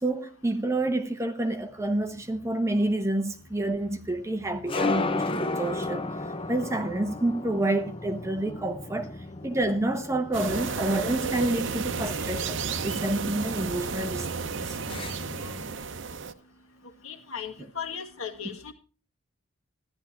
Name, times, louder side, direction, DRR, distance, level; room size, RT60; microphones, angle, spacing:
voice 1, 0.0-6.1 6.5-9.1 9.4-12.6 12.8-14.8 15.4-15.5 18.4-18.6, right 1 dB, 15° right, 1.0 m, -28 dB
sound 1, 1.7-15.7, left 3 dB, 25° left, 0.6 m, -36 dB
sound 2, 10.3-16.3, right 5 dB, 60° right, 0.8 m, -32 dB
voice 2, 17.0-18.7, left 7 dB, 80° left, 2.0 m, -37 dB
14.5 x 11.0 x 4.5 m
head